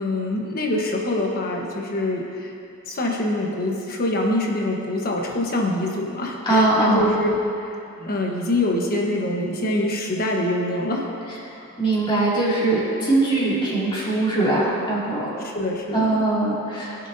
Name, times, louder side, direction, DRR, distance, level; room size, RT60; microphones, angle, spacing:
voice 1, 0.0-2.5 2.8-11.1 11.6-11.7 12.4-12.5 15.4-16.2, left 1 dB, 45° left, 0 dB, 1.3 m, -25 dB
voice 2, 6.4-7.1 11.8-15.3 15.9-17.0, right 2 dB, 25° left, -8 dB, 2.8 m, -21 dB
20.5 x 7.2 x 2.8 m, 2.7 s
head